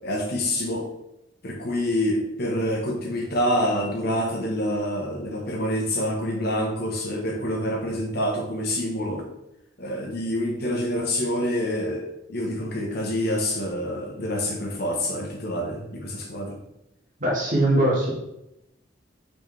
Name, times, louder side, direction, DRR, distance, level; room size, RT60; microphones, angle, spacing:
voice 1, 0.0-0.9 1.4-9.3 9.8-16.6, left 1 dB, 60° left, 1 dB, 1.4 m, -27 dB
voice 2, 17.2-18.1, right 1 dB, 45° right, -6 dB, 2.1 m, -21 dB
5.9 x 4.7 x 3.5 m, 0.88 s
head